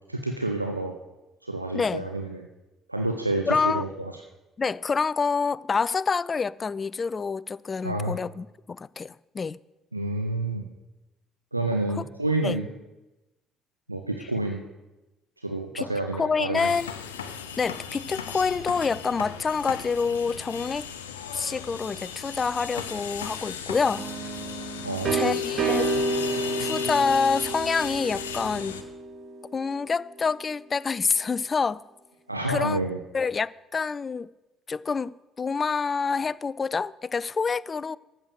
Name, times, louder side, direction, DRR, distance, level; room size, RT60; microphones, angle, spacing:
voice 1, 0.1-1.0 1.4-2.5 2.9-3.9 7.8-8.2 9.9-10.6 11.5-12.7 13.9-14.6 15.4-16.7 24.8-25.3 32.3-33.0, right 2 dB, 90° right, 0.6 m, -29 dB
voice 2, 1.7-2.1 3.5-3.8 4.6-9.6 12.4-12.6 15.7-16.9 17.6-20.9 21.3-24.1 25.1-25.9 26.6-28.8 29.5-31.8 32.5-32.8 33.1-34.3 34.7-38.0, left 5 dB, 30° left, 0.3 m, -27 dB
sound 1, 16.6-28.8, left 7 dB, 75° left, 0.8 m, -36 dB
sound 2, 24.0-29.7, right 2 dB, 40° right, 1.3 m, -30 dB
14.0 x 6.6 x 6.5 m
figure-of-eight pair, 50°, 0 cm